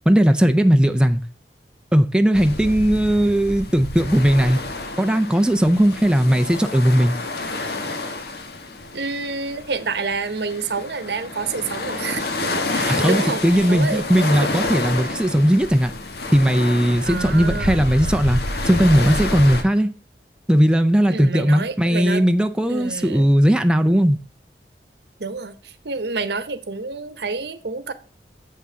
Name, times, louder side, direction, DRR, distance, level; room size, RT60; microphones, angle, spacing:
voice 1, 0.1-1.2 1.9-4.6 5.0-7.2 12.9-15.9 16.3-19.9 20.5-24.2, equal, 5° right, 0.5 m, -17 dB
sound 1, 2.3-19.6, left 2 dB, 65° left, 1.3 m, -29 dB
voice 2, 8.9-14.3 15.0-15.1 17.1-17.8 21.1-22.2 22.7-23.2 25.2-27.9, right 4 dB, 70° right, 0.9 m, -28 dB
7.5 x 6.0 x 6.8 m
head